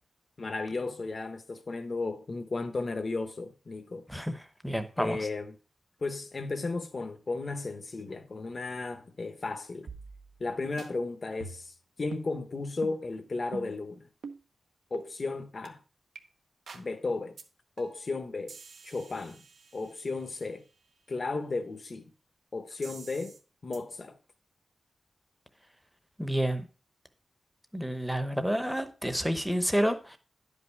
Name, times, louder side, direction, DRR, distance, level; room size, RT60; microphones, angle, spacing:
voice 1, 0.4-4.0 5.0-5.6 6.0-9.9 10.4-14.1 14.9-15.8 16.7-17.3 17.8-18.6 18.8-19.4 19.7-20.7 21.1-22.1 22.5-23.4 23.6-24.2, left 3 dB, 40° left, 0.9 m, -34 dB
voice 2, 4.6-5.2 26.2-26.6 27.7-30.2, equal, ahead, 0.8 m, -29 dB
sound 1, 9.9-10.5 10.8-10.9 11.4-11.8 12.1-12.3 12.8-13.0 13.5-13.8 14.2-14.4 14.9-15.1 15.7-15.8 16.2-16.3 16.7-16.9 17.4-17.5 17.8-18.1 18.5-20.3 22.8-23.4 23.7-23.8, right 4 dB, 85° right, 1.0 m, -45 dB
10.5 x 5.4 x 4.6 m
wide cardioid pair, 140°, 0 cm